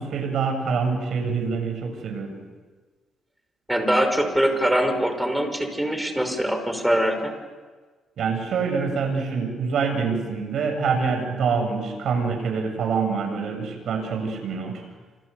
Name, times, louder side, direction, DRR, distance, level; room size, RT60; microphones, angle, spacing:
voice 1, 0.0-2.4 8.2-14.8, right 5 dB, 65° right, 5 dB, 7.2 m, -25 dB
voice 2, 3.7-7.3, equal, 5° right, 7 dB, 5.3 m, -23 dB
28.0 x 27.5 x 7.1 m, 1.4 s
cardioid pair, 90°, 0 cm